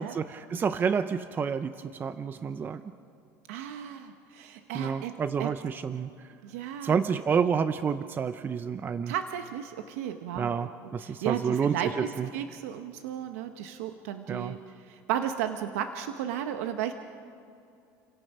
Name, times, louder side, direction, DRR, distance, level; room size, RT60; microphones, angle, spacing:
voice 1, 0.0-2.8 4.7-6.3 6.8-9.1 10.4-12.3 14.3-14.6, right 6 dB, 25° right, 12 dB, 0.6 m, -29 dB
voice 2, 3.5-5.5 6.4-7.0 9.1-10.6 11.0-14.6 14.9-16.9, right 10 dB, 90° right, 7 dB, 0.9 m, -34 dB
29.5 x 17.0 x 5.5 m, 2.6 s
supercardioid pair, 120°, 8 cm